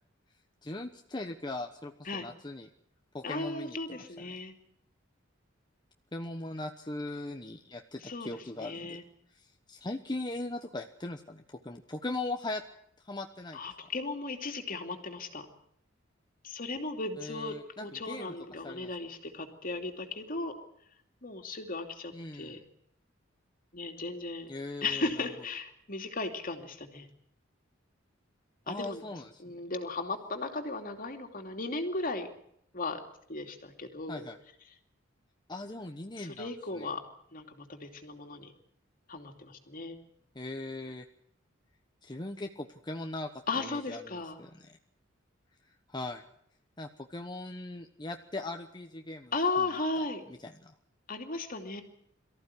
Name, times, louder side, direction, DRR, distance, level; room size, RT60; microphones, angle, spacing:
voice 1, 0.6-2.7 3.1-4.4 6.1-9.0 9.3-12.6 13.0-13.6 17.2-18.9 22.1-22.6 24.5-25.3 28.7-29.4 34.1-34.4 35.5-36.9 40.3-41.0 42.0-43.3 43.5-44.8 45.6-46.2 46.8-50.7, left 2 dB, 20° left, 5 dB, 1.0 m, -40 dB
voice 2, 3.2-4.5 8.0-8.3 8.5-9.0 13.5-15.5 16.4-17.5 17.8-20.5 21.2-22.6 23.7-24.5 24.8-27.1 28.7-29.0 29.4-32.3 32.7-33.0 33.3-34.3 36.2-37.0 37.3-38.5 39.1-40.0 43.5-44.4 49.3-50.2 51.1-51.8, left 3 dB, 45° left, 5 dB, 2.8 m, -36 dB
23.5 x 14.5 x 9.8 m, 0.72 s
head